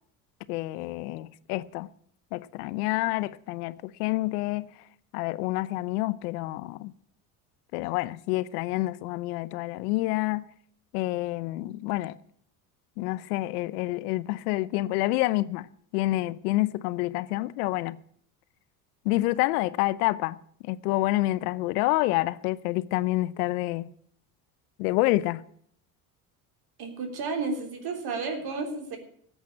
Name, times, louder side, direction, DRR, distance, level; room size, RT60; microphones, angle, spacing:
voice 1, 0.5-1.9 2.3-4.7 5.1-6.9 7.7-10.5 10.9-12.1 13.0-15.7 15.9-18.0 19.0-20.4 20.6-23.9 24.8-25.4, left 18 dB, 80° left, 0.8 m, -28 dB
voice 2, 26.8-29.0, right 4 dB, 55° right, 3.5 m, -32 dB
14.0 x 8.3 x 8.4 m
supercardioid pair, 80°, 44 cm